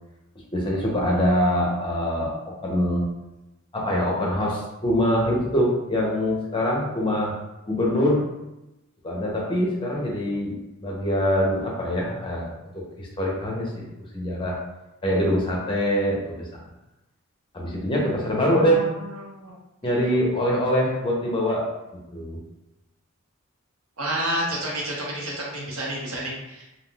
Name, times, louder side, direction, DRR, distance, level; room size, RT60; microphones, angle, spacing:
voice 1, 0.5-3.1 3.7-7.4 7.7-8.2 9.0-10.5 10.8-14.6 15.0-16.6 17.5-18.9 19.8-21.7 22.1-22.4, equal, 25° left, -3 dB, 0.6 m, -24 dB
voice 2, 18.4-19.5 24.0-26.7, right 1 dB, 85° right, -3 dB, 0.9 m, -30 dB
3.5 x 2.4 x 2.3 m, 0.95 s
head